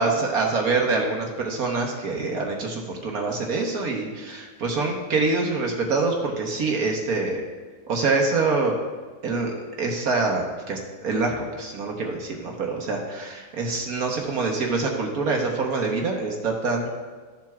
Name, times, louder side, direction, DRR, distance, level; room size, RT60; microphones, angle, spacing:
voice 1, 0.0-7.4 7.9-8.7 9.2-16.9, right 3 dB, 65° right, 0 dB, 1.5 m, -25 dB
14.0 x 7.4 x 2.4 m, 1.5 s
omnidirectional pair, 1.7 m